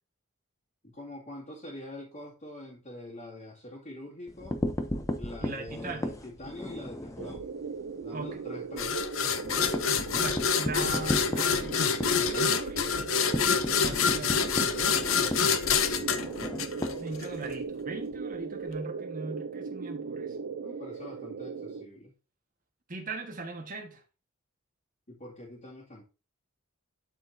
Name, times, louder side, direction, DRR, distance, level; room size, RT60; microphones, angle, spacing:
voice 1, 0.8-4.6 5.2-7.5 8.0-9.1 16.7-17.5 20.6-22.1 25.1-26.0, left 1 dB, 40° left, 2.3 m, -44 dB
sound 1, 4.3-7.5 7.9-8.0 8.3-8.4 8.8-17.6, left 1 dB, 15° left, 0.7 m, -35 dB
voice 2, 5.4-6.2 8.1-8.4 10.2-11.8 12.1-13.1 13.8-15.5 17.0-20.4 22.9-24.0, right 3 dB, 40° right, 1.5 m, -39 dB
sound 2, 7.2-21.9, right 5 dB, 65° right, 0.4 m, -38 dB
sound 3, 8.8-17.3, left 6 dB, 70° left, 0.7 m, -27 dB
11.5 x 4.3 x 2.7 m
head